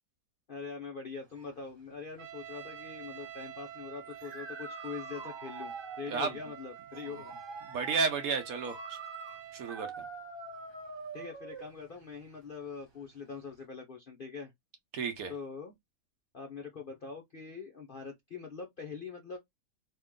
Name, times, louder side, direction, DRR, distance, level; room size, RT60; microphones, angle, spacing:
voice 1, 0.5-7.3 11.1-14.5 15.3-15.7 16.3-19.4, left 5 dB, 55° left, 0.6 m, -43 dB
sound 1, 1.2-13.6, right 4 dB, 30° right, 0.5 m, -46 dB
Trumpet, 2.2-9.9, right 10 dB, 85° right, 1.4 m, -48 dB
voice 2, 6.1-6.4 7.7-9.0 9.5-10.0 14.9-15.3, right 5 dB, 65° right, 1.0 m, -32 dB
3.0 x 2.9 x 3.6 m
omnidirectional pair, 1.8 m